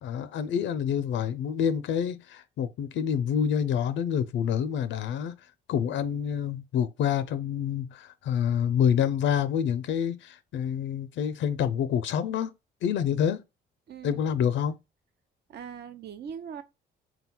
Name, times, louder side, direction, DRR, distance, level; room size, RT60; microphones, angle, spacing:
voice 1, 0.0-5.4 5.7-12.5 12.8-13.4 14.0-14.8, left 8 dB, 70° left, 0.4 m, -27 dB
voice 2, 13.9-14.2 15.5-16.6, right 7 dB, 55° right, 0.6 m, -40 dB
3.9 x 2.3 x 4.2 m
cardioid pair, 90°, 20 cm